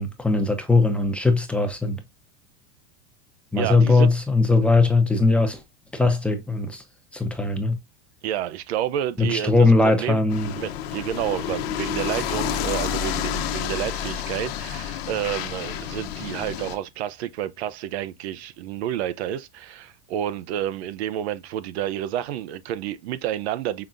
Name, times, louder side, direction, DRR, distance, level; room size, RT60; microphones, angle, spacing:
voice 1, 0.0-2.0 3.5-5.6 5.9-6.8 7.1-7.8 9.2-10.5, left 3 dB, 5° left, 0.7 m, -20 dB
voice 2, 3.6-4.1 8.2-10.2 10.6-23.9, right 11 dB, 80° right, 0.7 m, -29 dB
sound 1, 10.3-16.8, left 9 dB, 70° left, 1.0 m, -29 dB
5.7 x 3.4 x 2.5 m
supercardioid pair, 150°, 32 cm